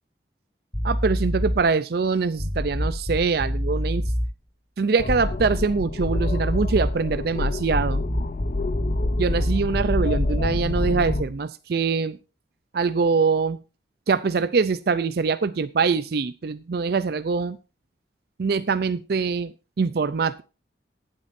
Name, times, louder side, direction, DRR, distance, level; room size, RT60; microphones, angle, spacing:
sound 1, 0.7-1.7 2.4-4.3 5.1-5.8 6.1-7.0 7.7-11.4, equal, 20° left, 1.8 m, -27 dB
voice 1, 0.8-4.1 4.8-8.0 9.2-12.2 12.7-13.6 14.1-17.6 18.4-20.4, right 5 dB, 60° right, 13 dB, 0.4 m, -23 dB
sound 2, 5.0-11.2, left 3 dB, 45° left, 0.4 m, -29 dB
18.0 x 8.5 x 2.6 m, 0.31 s
head